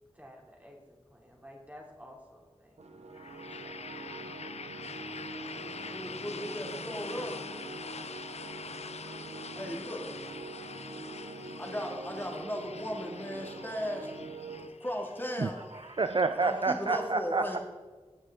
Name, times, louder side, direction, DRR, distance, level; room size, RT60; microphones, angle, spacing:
voice 1, 0.1-2.9 3.2-3.9, equal, 15° right, -1 dB, 3.1 m, -53 dB
sound 1, 2.8-14.7, right 3 dB, 90° right, 0.9 m, -44 dB
sound 2, 3.1-16.9, left 5 dB, 80° left, 0.4 m, -45 dB
voice 2, 5.6-7.4 9.5-10.1 11.6-14.1 14.8-15.6 16.3-17.6, equal, 20° left, 0 dB, 2.2 m, -36 dB
voice 3, 15.4-17.6, right 4 dB, 45° right, 9 dB, 0.4 m, -29 dB
17.0 x 6.3 x 3.8 m, 1.4 s
wide cardioid pair, 45°, 11 cm